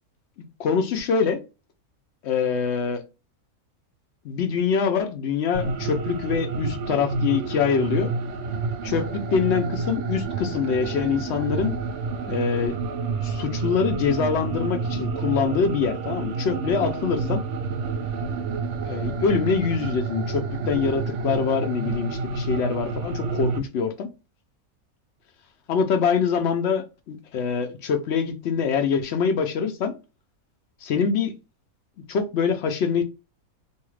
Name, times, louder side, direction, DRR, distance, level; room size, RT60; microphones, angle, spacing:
voice 1, 0.6-1.4 2.2-3.0 4.2-8.1 8.8-11.8 12.3-12.8 13.2-17.4 18.9-24.1 25.7-29.9 30.8-31.3 32.1-33.0, left 6 dB, 60° left, 0.7 m, -24 dB
sound 1, 5.5-23.6, right 4 dB, 65° right, 0.8 m, -29 dB
2.7 x 2.4 x 3.1 m
omnidirectional pair, 1.6 m